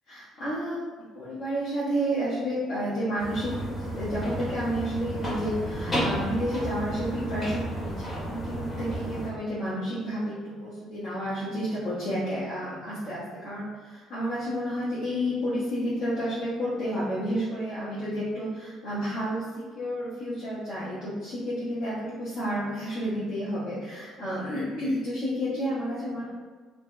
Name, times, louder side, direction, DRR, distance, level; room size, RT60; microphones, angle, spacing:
voice 1, 0.1-0.8 1.1-19.4 19.7-26.3, equal, 60° left, -10 dB, 0.7 m, -31 dB
sound 1, 3.2-9.3, equal, 25° left, 0.9 m, -32 dB
2.6 x 2.0 x 2.3 m, 1.5 s
hypercardioid pair, 50°, 0 cm